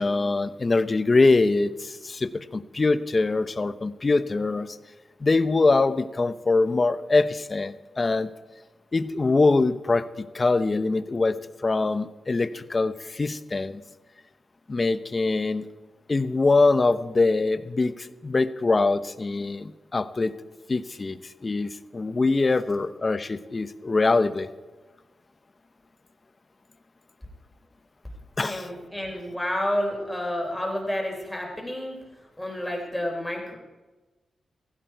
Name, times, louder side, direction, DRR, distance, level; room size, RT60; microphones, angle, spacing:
voice 1, 0.0-4.8 5.2-8.3 8.9-13.8 14.7-15.6 16.1-20.3 20.7-24.5 28.4-28.7, left 3 dB, 35° left, 13 dB, 0.8 m, -23 dB
voice 2, 28.4-32.0 32.4-33.6, left 1 dB, 5° left, 0 dB, 4.1 m, -30 dB
15.5 x 15.5 x 4.7 m, 1.2 s
cardioid pair, 85°, 0 cm